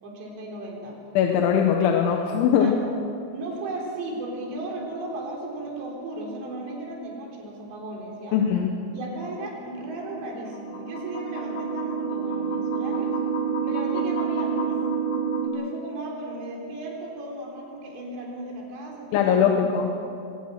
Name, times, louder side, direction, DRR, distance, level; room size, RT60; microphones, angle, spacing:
voice 1, 0.0-1.0 2.6-2.8 3.3-8.4 8.9-13.2 13.6-14.7 15.4-19.6, right 2 dB, 70° right, -1 dB, 6.0 m, -35 dB
voice 2, 1.2-2.7 8.3-8.7 19.1-19.9, left 8 dB, 90° left, 2 dB, 3.6 m, -21 dB
sound 1, 10.2-15.5, right 6 dB, 45° left, 1.9 m, -28 dB
23.5 x 18.0 x 6.6 m, 2.5 s
omnidirectional pair, 5.2 m